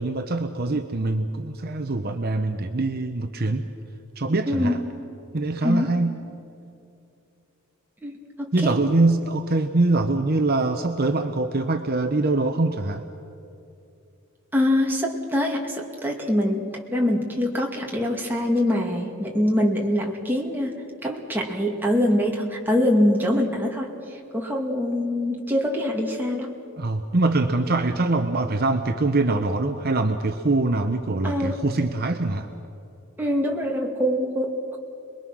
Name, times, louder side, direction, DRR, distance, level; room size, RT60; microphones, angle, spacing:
voice 1, 0.0-3.7 4.2-4.8 5.3-6.2 8.5-13.0 26.8-32.5, right 2 dB, 45° right, 7 dB, 0.9 m, -23 dB
voice 2, 4.5-4.8 5.6-5.9 8.0-8.8 14.5-16.6 16.9-20.7 21.0-23.9 24.3-26.5 31.2-31.6 33.2-34.8, left 1 dB, 10° right, -1 dB, 2.4 m, -24 dB
27.0 x 22.0 x 6.3 m, 2.7 s
head